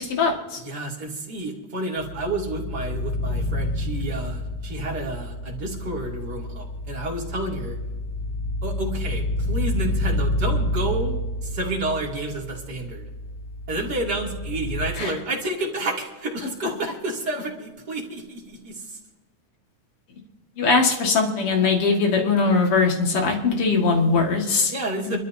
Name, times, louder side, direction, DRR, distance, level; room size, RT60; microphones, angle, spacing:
voice 1, 0.0-0.6 15.0-15.1 20.6-24.7 25.0-25.2, left 4 dB, 50° left, 2 dB, 2.7 m, -21 dB
voice 2, 0.6-7.8 8.6-13.1 13.7-19.0 24.7-25.2, right 2 dB, 35° right, -1 dB, 2.9 m, -30 dB
sound 1, 2.0-14.9, left 1 dB, 85° left, 4.7 m, -29 dB
29.0 x 13.0 x 2.8 m, 1.2 s
omnidirectional pair, 3.5 m